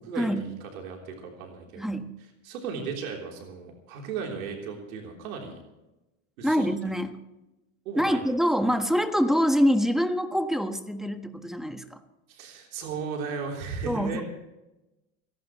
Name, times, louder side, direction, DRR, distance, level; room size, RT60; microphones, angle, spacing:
voice 1, 0.1-1.9 2.2-5.6 6.4-6.9 7.9-8.3 12.3-14.2, right 5 dB, 80° right, 1 dB, 3.6 m, -36 dB
voice 2, 1.8-2.1 6.4-7.2 8.0-12.0 13.8-14.2, equal, ahead, 6 dB, 1.4 m, -25 dB
30.0 x 11.5 x 3.1 m, 0.99 s
supercardioid pair, 100°, 41 cm